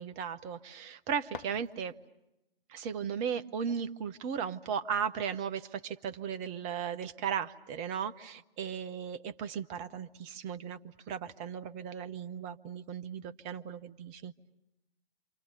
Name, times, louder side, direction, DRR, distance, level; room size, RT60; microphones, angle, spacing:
voice 1, 0.0-1.9 2.7-10.8 11.1-14.3, right 7 dB, 25° right, 11 dB, 0.9 m, -36 dB
sound 1, 1.2-2.3, left 6 dB, 60° left, 1.0 m, -49 dB
28.0 x 27.0 x 6.8 m, 0.91 s
figure-of-eight pair, 120°, 29 cm